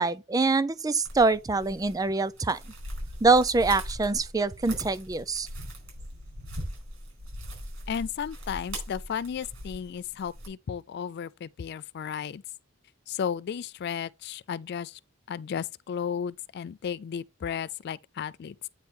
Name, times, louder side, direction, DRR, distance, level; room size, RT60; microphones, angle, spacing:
voice 1, 0.0-2.6 3.2-5.5, right 3 dB, 20° right, 0.4 m, -24 dB
sound 1, 1.0-10.5, equal, 80° right, 5.1 m, -40 dB
voice 2, 7.9-12.4 13.1-15.0 15.3-18.7, left 7 dB, 55° left, 0.3 m, -34 dB
8.9 x 3.7 x 4.3 m
head